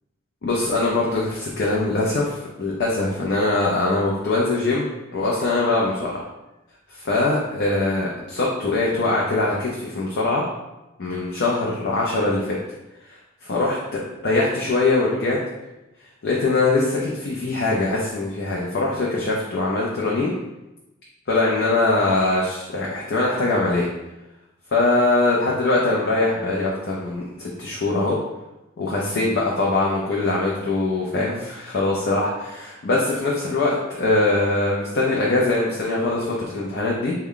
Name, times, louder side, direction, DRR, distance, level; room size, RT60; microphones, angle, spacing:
voice 1, 0.4-6.2 6.9-10.4 11.0-12.6 13.1-15.4 16.2-20.3 21.3-23.9 24.7-28.2 28.8-37.1, left 2 dB, 55° left, -4 dB, 0.5 m, -22 dB
3.4 x 2.2 x 3.6 m, 0.99 s
head